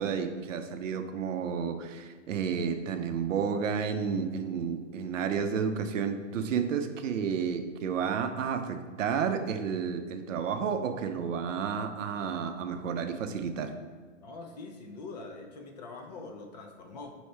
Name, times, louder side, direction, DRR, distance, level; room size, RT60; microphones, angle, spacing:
voice 1, 0.0-13.7, right 6 dB, 70° right, 8 dB, 0.6 m, -31 dB
voice 2, 14.2-17.2, left 3 dB, 35° left, 3 dB, 0.4 m, -44 dB
5.4 x 2.8 x 3.3 m, 1.5 s
hypercardioid pair, 145°, 39 cm